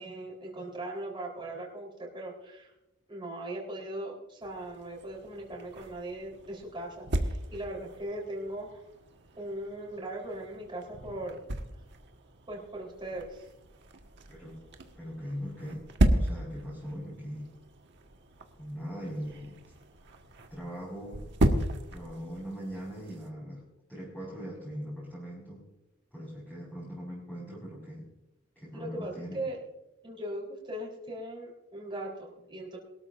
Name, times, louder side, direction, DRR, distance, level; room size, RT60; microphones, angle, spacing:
voice 1, 0.0-2.7 3.1-8.8 9.4-11.4 12.5-13.4 28.7-29.6 30.0-32.8, right 1 dB, 20° right, -2 dB, 3.9 m, -39 dB
sound 1, 4.4-23.3, right 1 dB, 55° right, 1.4 m, -35 dB
voice 2, 14.9-15.9 16.1-17.5 18.6-19.6 20.5-21.3 21.9-25.6 26.1-28.1 28.5-29.4, equal, 10° left, -7 dB, 5.0 m, -40 dB
22.5 x 13.0 x 2.6 m, 0.91 s
head